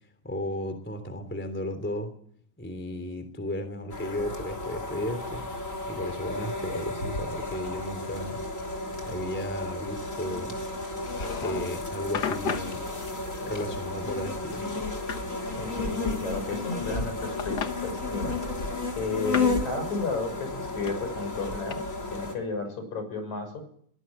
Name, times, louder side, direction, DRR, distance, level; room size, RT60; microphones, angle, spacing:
voice 1, 0.2-2.1 2.6-5.4 5.9-8.4 9.1-10.5 11.4-12.8 13.4-14.6, left 1 dB, 5° left, 9 dB, 2.8 m, -34 dB
sound 1, 3.9-22.3, left 3 dB, 25° left, 3.6 m, -33 dB
sound 2, 11.0-11.8 12.1-12.8 13.6-14.3 14.5-15.3 16.4-17.1 17.4-17.7 18.6-19.6 20.9-21.7, left 6 dB, 50° left, 1.3 m, -35 dB
voice 2, 15.5-18.3 19.0-21.8 22.1-23.6, left 3 dB, 70° left, 7 dB, 7.7 m, -33 dB
23.0 x 19.0 x 9.0 m, 0.63 s
omnidirectional pair, 3.4 m